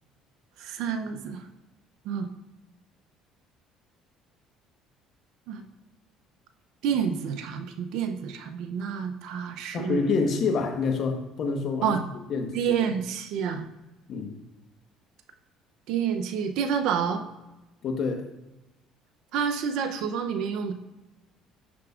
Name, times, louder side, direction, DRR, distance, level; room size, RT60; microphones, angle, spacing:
voice 1, 0.6-1.5 2.0-2.3 5.5-5.7 6.8-10.1 11.8-12.0 12.5-13.7 15.9-17.2 19.3-20.7, right 7 dB, 70° right, 7 dB, 0.5 m, -28 dB
voice 2, 9.7-12.0 12.3-12.5 14.1-14.3 17.8-18.3, left 4 dB, 55° left, 5 dB, 1.1 m, -27 dB
8.4 x 5.9 x 2.4 m, 1.0 s
supercardioid pair, 80°, 0 cm